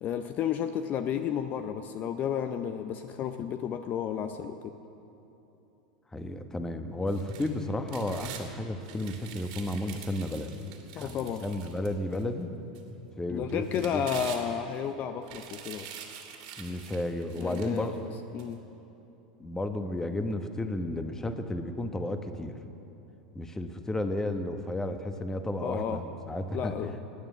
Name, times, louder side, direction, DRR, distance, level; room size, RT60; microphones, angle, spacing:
voice 1, 0.0-4.7 10.9-11.4 13.3-15.9 17.4-18.0 18.3-18.6 25.6-26.0 26.5-26.9, left 8 dB, 40° left, 9 dB, 0.6 m, -32 dB
voice 2, 6.1-10.5 10.9-12.5 13.2-14.1 16.6-18.0 19.4-22.6 23.3-26.7, left 1 dB, 10° left, 7 dB, 1.2 m, -33 dB
sound 1, 7.1-8.4 8.8-12.2 12.7-12.8 13.5-14.8 15.2-17.9 18.4-18.5, right 8 dB, 65° right, 2.3 m, -45 dB
17.0 x 9.3 x 6.8 m, 3.0 s
hypercardioid pair, 95°, 4 cm